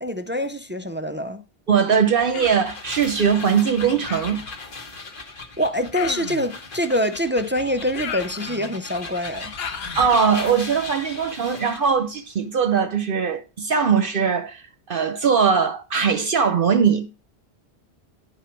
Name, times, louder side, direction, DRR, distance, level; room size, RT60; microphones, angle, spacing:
voice 1, 0.0-1.4 5.6-9.5, equal, 20° right, 0.3 m, -25 dB
voice 2, 1.7-4.4 9.9-14.6 14.9-17.1, right 6 dB, 60° right, 0.9 m, -20 dB
sound 1, 1.9-12.0, left 3 dB, 55° left, 1.4 m, -37 dB
Human voice, 2.3-2.7 4.1-4.5 5.9-6.5 7.9-8.8 9.6-10.1, left 7 dB, 70° left, 0.9 m, -34 dB
10.5 x 5.1 x 4.5 m
omnidirectional pair, 1.1 m